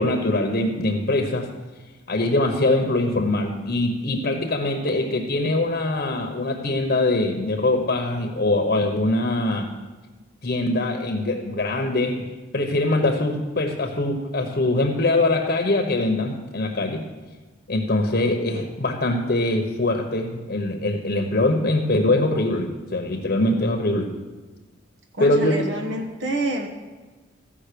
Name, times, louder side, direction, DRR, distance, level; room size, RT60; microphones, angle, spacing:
voice 1, 0.0-1.5 2.1-9.7 10.4-17.0 17.7-24.1 25.2-25.6, left 2 dB, 50° left, 3 dB, 1.0 m, -23 dB
voice 2, 25.1-26.7, right 1 dB, 65° right, 2 dB, 1.2 m, -27 dB
15.0 x 5.4 x 6.8 m, 1.3 s
head